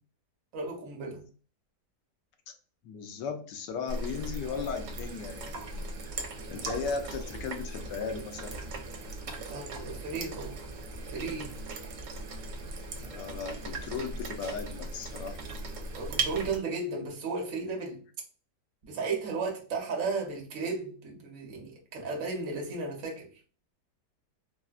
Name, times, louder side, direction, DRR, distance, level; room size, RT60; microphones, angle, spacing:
voice 1, 0.5-1.2 9.5-10.6 11.1-11.9 15.9-18.0 18.8-23.3, right 4 dB, 55° right, 1.1 m, -35 dB
voice 2, 2.8-5.9 6.2-8.5 13.0-15.9 18.9-19.0, left 5 dB, 85° left, 1.3 m, -37 dB
sound 1, 3.9-16.6, right 3 dB, 80° right, 1.2 m, -38 dB
3.9 x 2.1 x 2.3 m
omnidirectional pair, 1.8 m